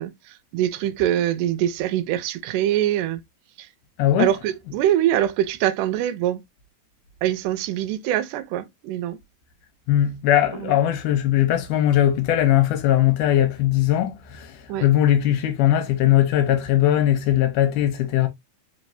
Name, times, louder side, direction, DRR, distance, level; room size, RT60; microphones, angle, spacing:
voice 1, 0.0-3.2 3.6-3.7 4.2-6.4 7.2-9.2 10.5-10.8 14.7-14.9, right 12 dB, 80° right, 2.1 m, -24 dB
voice 2, 4.0-4.3 9.9-18.3, left 12 dB, 85° left, 2.2 m, -20 dB
4.8 x 3.2 x 2.6 m
omnidirectional pair, 3.7 m